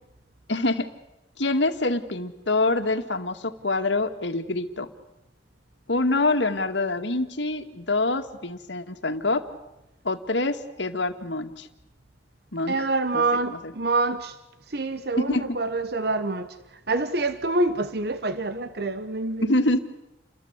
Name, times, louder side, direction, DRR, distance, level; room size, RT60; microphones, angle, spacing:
voice 1, 0.5-0.9 1.4-4.9 5.9-9.4 10.0-11.7 12.5-12.7 13.1-13.7 15.2-15.5 19.4-19.8, left 2 dB, 75° left, 2.2 m, -25 dB
voice 2, 12.7-14.4 14.7-16.6 16.9-19.5, right 2 dB, 60° right, 1.2 m, -26 dB
30.0 x 22.5 x 8.3 m
head